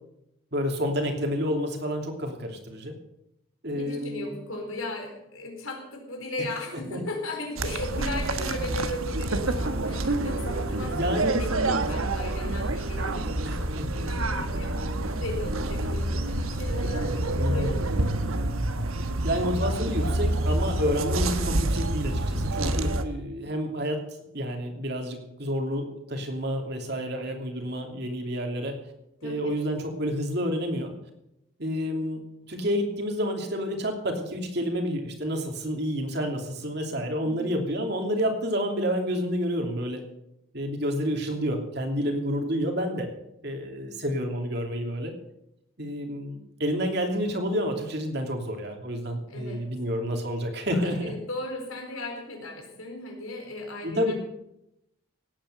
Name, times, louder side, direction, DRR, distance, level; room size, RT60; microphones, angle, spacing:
voice 1, 0.5-2.9 3.6-4.3 6.9-7.0 10.9-11.4 13.4-14.2 17.4-17.8 19.0-24.0 24.3-28.7 29.2-30.9 31.6-32.2 32.5-40.0 40.5-43.1 43.4-45.1 45.8-51.1 53.8-54.1, equal, 50° right, 3 dB, 2.9 m, -29 dB
voice 2, 3.7-17.9 29.2-29.4 37.2-37.5 49.3-49.6 50.7-54.1, left 2 dB, 85° left, 3 dB, 4.3 m, -37 dB
sound 1, 7.6-23.0, right 1 dB, 85° right, 1.3 m, -27 dB
18.0 x 9.2 x 6.8 m, 0.82 s
head